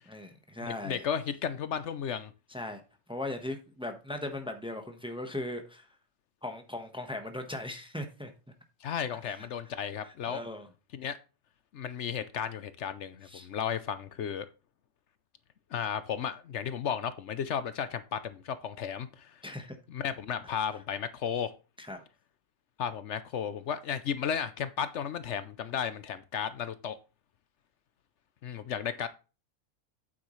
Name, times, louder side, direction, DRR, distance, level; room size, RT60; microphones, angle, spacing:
voice 1, 0.1-1.1 2.5-2.8 3.1-5.9 6.4-8.3 9.3-9.4 10.0-10.7 13.2-13.5 19.4-19.8 21.8-22.0, left 1 dB, 5° right, 1.0 m, -38 dB
voice 2, 0.6-2.3 8.8-10.4 10.9-11.2 11.7-14.5 15.7-19.4 19.9-21.5 22.8-27.0 28.4-29.1, left 8 dB, 70° left, 1.0 m, -34 dB
8.7 x 8.0 x 3.1 m
omnidirectional pair, 1.3 m